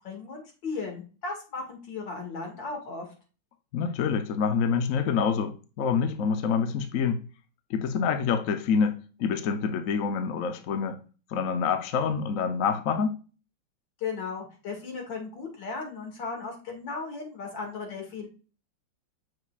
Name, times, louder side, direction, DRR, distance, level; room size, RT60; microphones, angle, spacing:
voice 1, 0.0-3.1 14.0-18.3, left 4 dB, 80° left, 2.7 m, -36 dB
voice 2, 3.7-7.2 7.7-11.0 11.3-13.2, left 6 dB, 60° left, 0.9 m, -27 dB
7.1 x 6.4 x 2.4 m
omnidirectional pair, 2.0 m